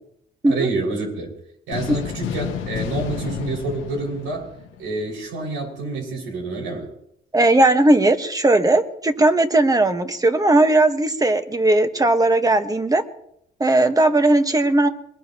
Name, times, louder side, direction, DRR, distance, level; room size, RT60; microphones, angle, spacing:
voice 1, 0.5-1.3 1.7-4.5 4.8-6.9, right 3 dB, 90° right, -1 dB, 6.2 m, -28 dB
sound 1, 1.7-5.2, left 8 dB, 90° left, 1.5 m, -31 dB
voice 2, 7.3-13.0 13.6-14.9, right 2 dB, 20° right, 7 dB, 1.5 m, -17 dB
22.5 x 20.0 x 3.1 m, 0.76 s
cardioid pair, 90°, 20 cm